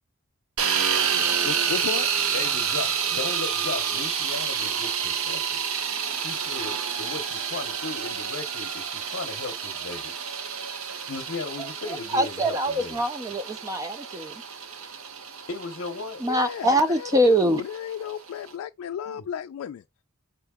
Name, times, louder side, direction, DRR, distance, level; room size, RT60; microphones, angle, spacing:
sound 1, 0.6-18.5, right 7 dB, 80° right, 0.7 m, -29 dB
voice 1, 1.4-2.1 16.3-19.8, left 8 dB, 90° left, 0.3 m, -33 dB
voice 2, 2.3-5.6 6.1-10.1 11.0-13.0 15.5-16.3 19.1-19.2, left 4 dB, 70° left, 0.7 m, -36 dB
voice 3, 12.1-14.4 16.2-17.6, equal, 15° right, 0.3 m, -23 dB
4.5 x 2.7 x 3.5 m
head